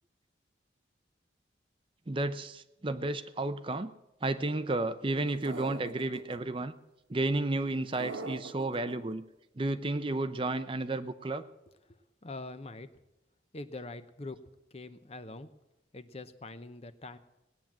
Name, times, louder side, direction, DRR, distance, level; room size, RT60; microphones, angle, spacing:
voice 1, 2.1-3.9 4.2-6.7 7.1-9.2 9.6-11.4, right 2 dB, 25° right, 11 dB, 0.6 m, -32 dB
sound 1, 5.4-6.4 8.0-9.0, right 3 dB, 80° right, 1.2 m, -41 dB
voice 2, 11.9-12.9 13.5-14.4 14.7-15.5 15.9-17.2, left 2 dB, 30° left, 11 dB, 0.7 m, -44 dB
18.5 x 9.1 x 7.3 m, 0.95 s
head